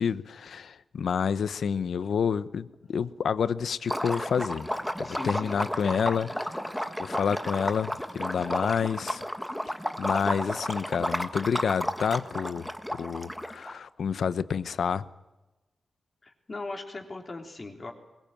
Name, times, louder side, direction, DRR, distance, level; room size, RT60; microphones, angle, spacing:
voice 1, 0.0-4.7 5.0-6.5 7.0-9.2 10.0-15.1, left 6 dB, 80° left, 15 dB, 0.9 m, -29 dB
Liquid, 3.8-13.7, equal, 5° left, 1.4 m, -32 dB
voice 2, 5.0-5.6 16.2-17.9, left 3 dB, 35° left, 3 dB, 3.7 m, -39 dB
22.5 x 21.0 x 9.1 m, 1.1 s
wide cardioid pair, 130°, 0 cm